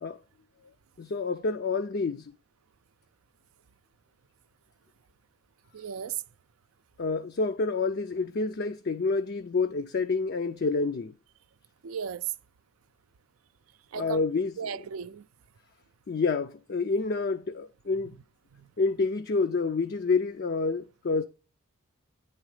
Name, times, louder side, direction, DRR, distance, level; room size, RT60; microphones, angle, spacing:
voice 1, 1.0-2.3 7.0-11.1 13.9-14.8 16.1-18.2 18.8-21.2, left 4 dB, 50° left, 0.4 m, -28 dB
voice 2, 5.7-6.2 11.8-12.3 13.9-14.2 14.6-15.3 18.5-18.6, right 8 dB, 80° right, 0.4 m, -35 dB
9.7 x 4.1 x 4.8 m
head